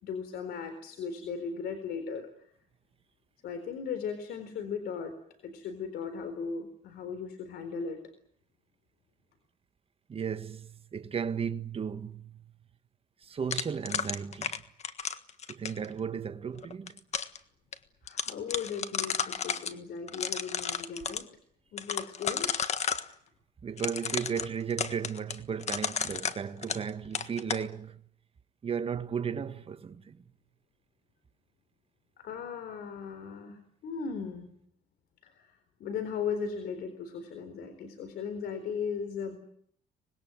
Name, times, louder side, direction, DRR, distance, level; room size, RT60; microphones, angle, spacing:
voice 1, 0.0-2.3 3.4-5.1 5.4-8.0 18.0-21.2 21.7-22.5 32.2-34.5 35.2-39.4, left 6 dB, 70° left, 4.0 m, -37 dB
voice 2, 10.1-12.4 13.2-14.6 15.5-16.9 23.6-28.0 28.6-30.2, right 7 dB, 35° right, 1.6 m, -35 dB
sound 1, 13.5-15.9 16.6-17.4 17.7-17.8 18.1-19.7 20.1-21.2 21.8-23.1 23.8-26.9 27.1-27.6, left 7 dB, 40° left, 1.6 m, -32 dB
25.5 x 20.5 x 9.0 m
cardioid pair, 110°, 17 cm